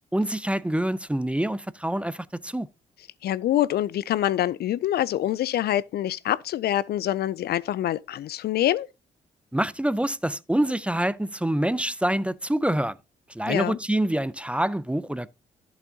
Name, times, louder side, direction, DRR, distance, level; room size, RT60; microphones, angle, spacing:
voice 1, 0.1-2.7 9.5-13.0 13.3-15.4, right 1 dB, 5° right, 0.5 m, -26 dB
voice 2, 3.2-8.9 13.5-13.8, left 12 dB, 60° left, 0.4 m, -25 dB
11.5 x 7.1 x 2.8 m
hypercardioid pair, 50°, 19 cm